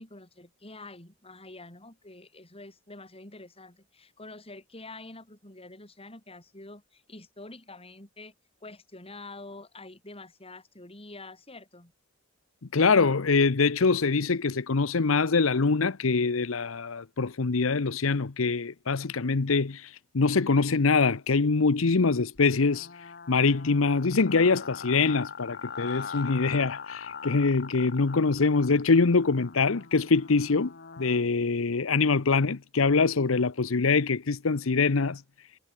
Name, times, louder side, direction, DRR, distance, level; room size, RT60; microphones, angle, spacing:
voice 1, 0.0-8.3 8.6-11.9, left 2 dB, 30° left, 7.5 m, -46 dB
voice 2, 12.7-22.9 23.3-35.2, left 4 dB, 75° left, 0.8 m, -24 dB
sound 1, 22.4-31.3, left 6 dB, 55° left, 2.5 m, -42 dB
head